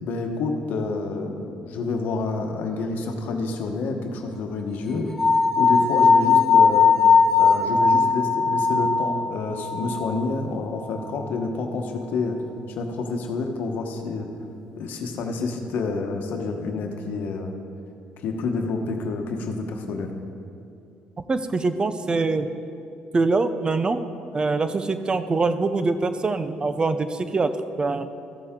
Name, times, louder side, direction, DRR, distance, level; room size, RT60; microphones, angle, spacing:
voice 1, 0.0-5.1 5.6-6.9 7.4-12.4 12.8-14.3 14.7-17.6 18.2-20.1, left 3 dB, 75° left, 4 dB, 1.0 m, -28 dB
sound 1, 5.2-10.3, left 5 dB, 10° left, 0.9 m, -19 dB
voice 2, 21.3-22.5 23.1-24.0 24.3-27.5 27.8-28.1, right 3 dB, 30° right, 11 dB, 0.6 m, -23 dB
14.5 x 6.9 x 3.7 m, 2.6 s
cardioid pair, 95°, 3 cm